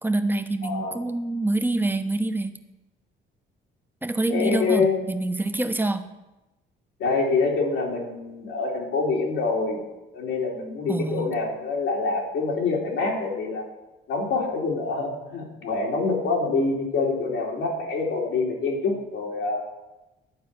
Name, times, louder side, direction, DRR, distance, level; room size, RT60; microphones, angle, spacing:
voice 1, 0.0-2.6 4.0-6.1 10.9-11.3, right 2 dB, 10° right, 8 dB, 0.9 m, -26 dB
voice 2, 0.6-1.0 4.3-5.0 7.0-9.8 10.1-13.7 14.1-19.6, left 4 dB, 85° left, -2 dB, 2.5 m, -26 dB
11.5 x 4.7 x 8.5 m, 1.0 s
cardioid pair, 90°, 20 cm